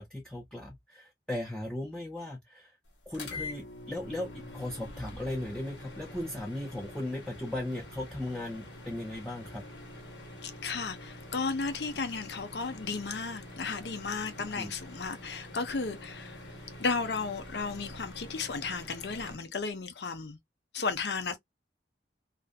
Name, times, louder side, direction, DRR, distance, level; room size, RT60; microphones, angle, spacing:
voice 1, 0.0-2.7 3.1-9.6 14.4-14.7, left 1 dB, 5° left, 0.5 m, -37 dB
sound 1, 3.1-19.3, left 1 dB, 90° left, 1.1 m, -46 dB
voice 2, 10.4-16.4 16.8-20.4 20.7-21.4, left 4 dB, 65° left, 0.6 m, -34 dB
2.5 x 2.4 x 2.4 m
head